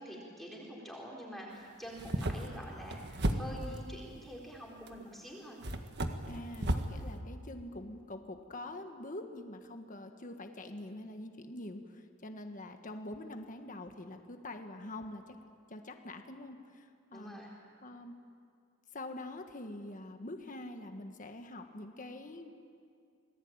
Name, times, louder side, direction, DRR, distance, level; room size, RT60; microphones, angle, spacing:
voice 1, 0.0-5.6 17.1-17.5, equal, ahead, -3 dB, 4.1 m, -46 dB
sound 1, 1.9-3.9 4.9-5.0 5.6-7.0, right 1 dB, 60° right, 1.7 m, -34 dB
voice 2, 6.3-15.4 15.7-17.4 17.8-18.2 18.9-22.5, left 1 dB, 45° left, 5 dB, 1.6 m, -45 dB
27.5 x 19.5 x 8.9 m, 2.3 s
head